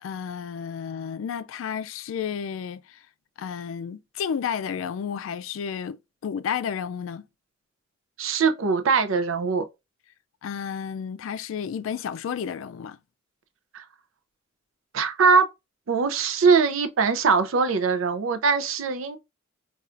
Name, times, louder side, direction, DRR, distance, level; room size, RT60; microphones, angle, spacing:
voice 1, 0.0-3.0 3.4-7.2 10.4-13.0, left 7 dB, 80° left, 0.3 m, -32 dB
voice 2, 8.2-9.6 13.7-13.8 14.9-15.5 15.9-19.2, right 5 dB, 85° right, 0.5 m, -21 dB
4.2 x 2.4 x 2.4 m
head